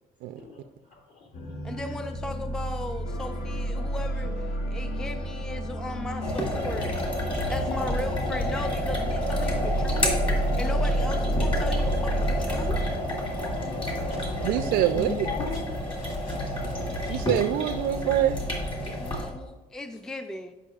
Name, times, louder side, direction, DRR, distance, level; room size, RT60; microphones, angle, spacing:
voice 1, 0.4-1.8 13.4-13.5 13.8-14.2 14.9-15.6 16.0-16.5 17.0-17.2 18.8-19.1, left 5 dB, 55° left, -1 dB, 2.1 m, -40 dB
sound 1, 1.3-12.9, right 1 dB, 70° left, 1.3 m, -30 dB
voice 2, 1.6-7.0 7.3-12.8 18.8-20.5, left 1 dB, 5° left, 7 dB, 0.4 m, -37 dB
sound 2, 3.0-14.5, left 4 dB, 90° left, 0.9 m, -43 dB
sound 3, 6.2-19.3, left 1 dB, 30° left, 2.1 m, -30 dB
voice 3, 14.4-15.3 17.1-18.4, right 11 dB, 80° right, 7 dB, 0.4 m, -25 dB
9.9 x 5.4 x 2.4 m, 1.2 s
cardioid pair, 110°, 17 cm